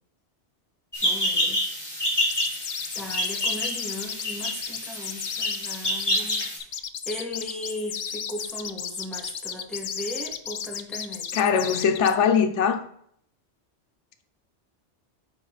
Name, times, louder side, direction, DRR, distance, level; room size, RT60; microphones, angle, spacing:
sound 1, 0.9-6.6, left 1 dB, 20° left, 2.4 m, -28 dB
voice 1, 1.0-1.6 3.0-6.4 7.1-11.5, left 1 dB, ahead, 1.8 m, -37 dB
sound 2, 2.3-12.2, left 7 dB, 60° left, 0.4 m, -34 dB
voice 2, 11.3-12.8, left 7 dB, 85° left, 1.0 m, -21 dB
9.9 x 4.1 x 4.0 m
omnidirectional pair, 1.2 m